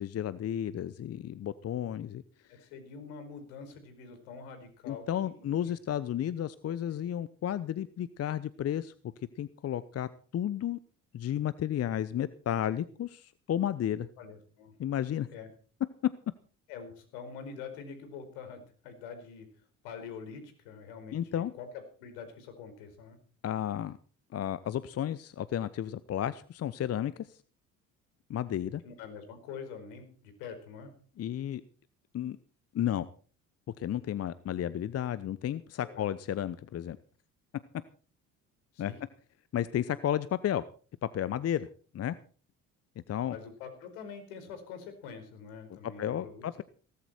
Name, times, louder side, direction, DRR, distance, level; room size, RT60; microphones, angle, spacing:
voice 1, 0.0-2.2 4.9-8.9 9.4-10.8 11.1-14.1 14.8-15.3 21.1-21.5 23.4-24.0 24.3-27.4 28.3-28.8 31.2-31.6 32.1-32.4 32.7-33.1 33.8-37.0 38.8-38.9 39.5-40.6 41.1-41.7 41.9-42.2 43.1-43.3 46.0-46.6, left 10 dB, 35° left, 16 dB, 0.9 m, -32 dB
voice 2, 2.5-5.7 6.9-7.0 14.2-14.7 15.3-15.5 16.7-19.5 19.8-23.2 28.8-30.9 35.9-36.1 38.7-39.0 43.3-46.6, left 6 dB, 65° left, 8 dB, 4.8 m, -45 dB
18.0 x 14.5 x 4.4 m, 0.42 s
figure-of-eight pair, 55°, 43 cm